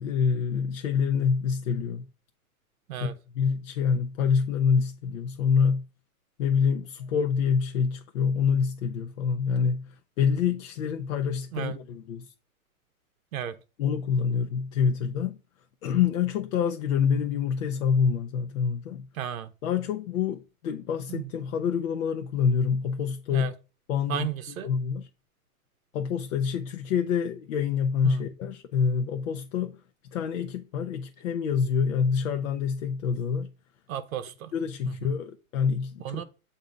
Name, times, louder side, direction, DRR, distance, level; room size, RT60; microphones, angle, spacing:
voice 1, 0.0-2.0 3.0-5.9 6.4-12.2 13.8-15.4 15.8-19.1 19.6-23.5 23.9-25.1 25.9-29.8 30.1-33.5 34.5-36.2, left 6 dB, 60° left, 0.6 m, -26 dB
voice 2, 19.1-19.5 21.1-21.2 23.3-23.5 24.1-24.7 28.0-28.2 33.9-34.5 36.0-36.2, right 11 dB, 65° right, 0.7 m, -33 dB
7.0 x 2.7 x 5.1 m
hypercardioid pair, 140°, 44 cm